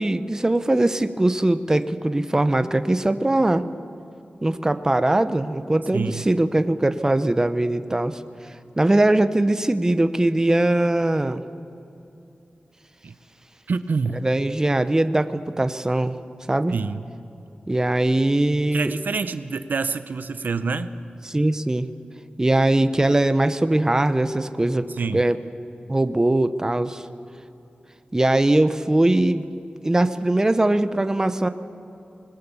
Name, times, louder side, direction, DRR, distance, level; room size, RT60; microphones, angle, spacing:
voice 1, 0.0-3.6 4.4-8.2 8.8-11.4 14.2-16.2 16.5-16.7 17.7-18.9 21.3-21.9 22.4-25.4 25.9-27.0 28.1-29.4 29.8-31.5, right 1 dB, 20° right, 10 dB, 0.8 m, -21 dB
voice 2, 5.9-6.3 13.0-13.2 13.7-14.2 16.7-17.0 18.7-20.9 25.0-25.2, right 4 dB, 75° right, 12 dB, 0.8 m, -26 dB
25.5 x 21.0 x 7.1 m, 2.8 s
wide cardioid pair, 110°, 3 cm